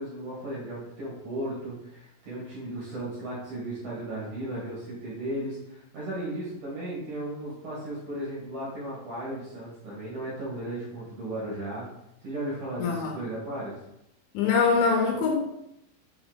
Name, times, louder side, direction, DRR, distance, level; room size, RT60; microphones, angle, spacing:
voice 1, 0.0-11.8 12.2-13.8, right 1 dB, 55° right, -7 dB, 2.6 m, -35 dB
voice 2, 12.8-13.2 14.3-15.4, left 5 dB, 80° left, 1 dB, 2.9 m, -23 dB
6.9 x 4.4 x 4.0 m, 0.83 s
omnidirectional pair, 5.7 m